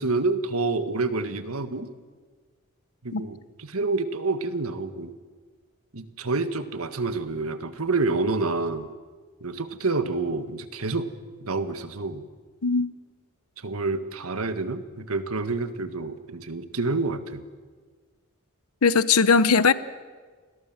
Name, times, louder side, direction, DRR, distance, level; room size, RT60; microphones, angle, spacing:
voice 1, 0.0-1.9 3.0-5.1 5.9-8.9 9.4-11.1 11.4-12.2 13.6-17.4, right 3 dB, 80° right, 1.7 m, -28 dB
voice 2, 18.8-19.7, left 5 dB, 90° left, 0.9 m, -19 dB
29.5 x 21.0 x 7.4 m
head